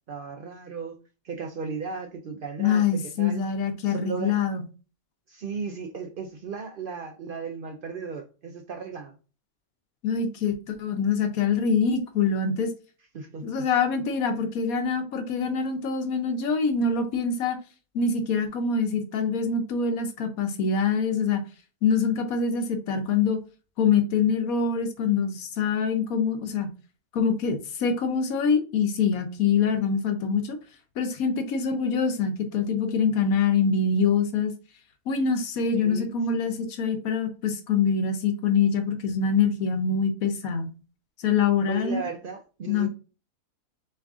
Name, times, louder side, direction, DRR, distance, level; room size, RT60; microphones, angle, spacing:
voice 1, 0.1-1.0 1.2-2.8 3.2-3.4 3.8-4.3 5.3-9.2 13.1-13.5 35.7-36.1 41.7-42.9, right 5 dB, 85° right, 0.4 m, -36 dB
voice 2, 2.6-4.6 10.0-12.7 13.4-17.6 17.9-21.4 21.8-23.4 23.8-26.7 27.1-30.6 31.0-34.5 35.1-40.8 41.2-42.0 42.7-42.9, left 5 dB, 75° left, 1.2 m, -25 dB
3.6 x 3.2 x 3.5 m
omnidirectional pair, 1.5 m